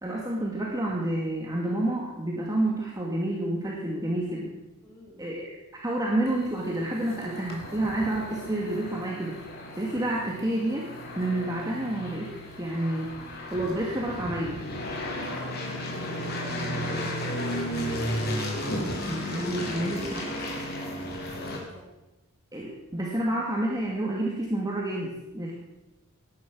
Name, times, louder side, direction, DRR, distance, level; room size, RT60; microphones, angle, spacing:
voice 1, 0.0-4.5 5.2-5.5 5.8-9.4 9.8-10.9 11.2-12.3 12.6-13.1 13.5-14.6 19.1-20.2 22.5-25.5, right 1 dB, 15° right, -3 dB, 2.2 m, -29 dB
voice 2, 4.8-5.3 15.0-17.5 19.7-21.9, left 1 dB, 10° left, -4 dB, 6.4 m, -48 dB
sound 1, 6.3-21.6, equal, 45° left, 3.5 m, -34 dB
18.5 x 11.0 x 6.3 m, 1.0 s
head